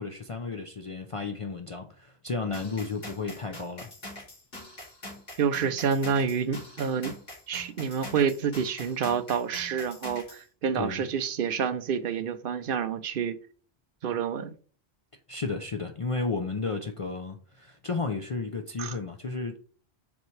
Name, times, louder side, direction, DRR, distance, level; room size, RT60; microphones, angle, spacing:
voice 1, 0.0-3.9 10.7-11.0 15.3-19.6, left 4 dB, 40° left, 0.5 m, -33 dB
sound 1, 2.5-10.4, left 1 dB, 70° left, 2.8 m, -44 dB
voice 2, 5.4-7.1 7.5-13.4 14.0-14.5 18.8-19.0, right 6 dB, 65° right, 0.8 m, -28 dB
7.1 x 4.6 x 3.2 m
omnidirectional pair, 1.0 m